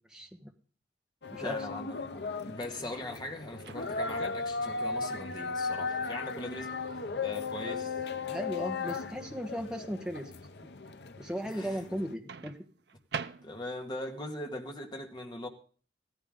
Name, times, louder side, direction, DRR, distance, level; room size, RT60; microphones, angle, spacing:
voice 1, 0.1-0.5 1.3-1.6 8.2-10.3 11.2-12.6, equal, 5° right, 1.4 m, -36 dB
sound 1, 1.2-12.1, left 4 dB, 65° left, 0.8 m, -36 dB
voice 2, 1.4-8.0 11.4-11.9 13.4-15.5, left 1 dB, 25° left, 1.9 m, -41 dB
Microwave oven, 3.6-4.3 6.3-6.5 12.3-13.9, right 5 dB, 65° right, 0.7 m, -42 dB
16.0 x 14.5 x 3.9 m
head